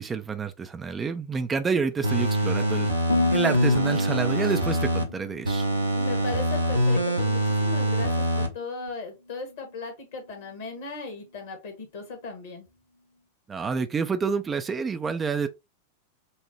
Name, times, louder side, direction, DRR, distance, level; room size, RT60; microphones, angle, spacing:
voice 1, 0.0-2.9 3.3-5.7 13.5-15.5, right 5 dB, 20° right, 0.4 m, -28 dB
sound 1, 2.0-5.0 5.5-8.5 8.9-9.0, right 1 dB, 85° right, 0.8 m, -24 dB
Harp, 3.1-7.2 7.5-8.0 8.6-8.9, left 2 dB, 80° left, 0.5 m, -32 dB
voice 2, 5.9-12.7, left 3 dB, 55° left, 1.4 m, -37 dB
5.4 x 2.1 x 3.1 m
figure-of-eight pair, 90°, 0 cm